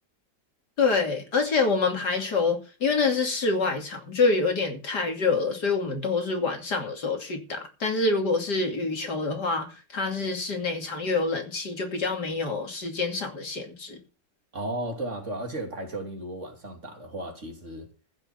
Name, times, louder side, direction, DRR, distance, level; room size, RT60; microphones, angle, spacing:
voice 1, 0.8-9.7 9.9-14.0, left 4 dB, 65° left, 3.3 m, -26 dB
voice 2, 14.5-17.9, right 1 dB, 40° right, 3.1 m, -34 dB
15.0 x 6.5 x 7.3 m
omnidirectional pair, 2.0 m